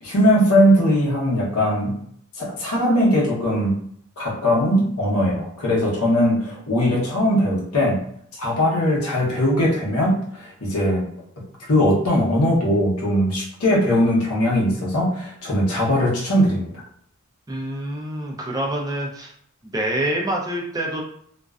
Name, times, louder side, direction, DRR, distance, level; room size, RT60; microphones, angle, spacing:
voice 1, 0.0-2.0 2.4-3.8 4.2-8.0 8.4-11.0 11.7-16.7, equal, 80° left, -4 dB, 0.9 m, -20 dB
voice 2, 17.5-19.3 19.6-21.0, right 1 dB, 15° right, -1 dB, 0.4 m, -26 dB
2.4 x 2.1 x 2.3 m, 0.66 s
head